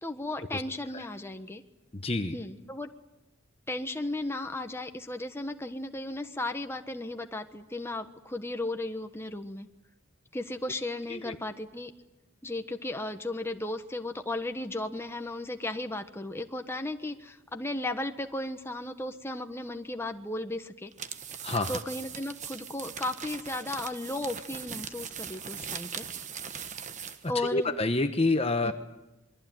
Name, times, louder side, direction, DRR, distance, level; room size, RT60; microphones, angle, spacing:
voice 1, 0.0-1.6 2.3-2.9 3.7-9.7 10.3-11.9 12.4-20.9 21.7-26.1 27.3-27.7 28.6-28.7, left 2 dB, 10° left, 6 dB, 1.2 m, -35 dB
voice 2, 1.9-2.3 11.1-11.4 21.4-21.8 27.3-28.7, left 2 dB, 25° left, 7 dB, 1.1 m, -28 dB
sound 1, 20.9-27.3, right 7 dB, 35° right, 1.3 m, -40 dB
27.5 x 22.5 x 9.2 m, 0.95 s
head